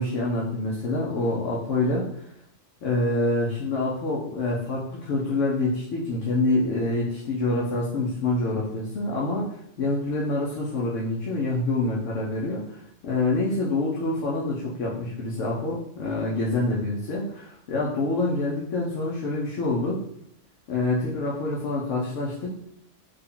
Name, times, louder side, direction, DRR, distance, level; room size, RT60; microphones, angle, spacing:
voice 1, 0.0-2.2 2.8-20.0 20.7-22.5, left 2 dB, 80° left, -5 dB, 1.0 m, -26 dB
3.5 x 2.2 x 3.6 m, 0.70 s
omnidirectional pair, 1.3 m